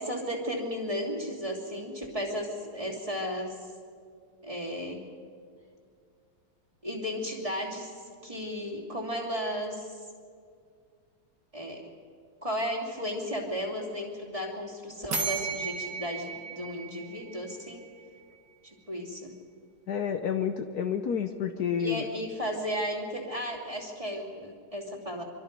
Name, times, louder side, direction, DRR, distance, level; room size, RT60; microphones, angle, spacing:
voice 1, 0.0-3.6 4.4-5.0 6.8-7.9 8.2-9.9 11.5-11.8 12.4-17.8 18.6-19.3 21.8-25.2, equal, 20° right, -1 dB, 2.9 m, -34 dB
sound 1, 15.1-17.9, right 6 dB, 65° right, 2.4 m, -35 dB
voice 2, 19.9-22.1, left 7 dB, 65° left, 7 dB, 1.3 m, -29 dB
25.5 x 24.0 x 5.3 m, 2.2 s
omnidirectional pair, 2.0 m